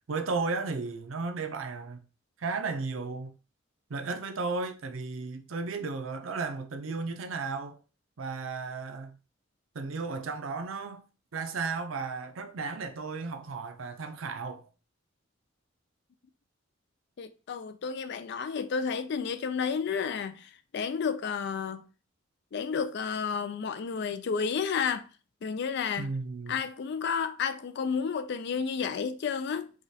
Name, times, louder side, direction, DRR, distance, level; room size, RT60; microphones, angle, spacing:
voice 1, 0.1-2.0 2.4-3.3 3.9-7.8 8.2-9.2 9.7-11.0 11.3-14.7 26.0-26.6, right 4 dB, 85° right, 0.6 m, -34 dB
voice 2, 17.2-21.8 22.5-25.1 25.4-26.1 26.5-29.7, left 6 dB, 60° left, 0.4 m, -31 dB
4.8 x 2.3 x 2.7 m
head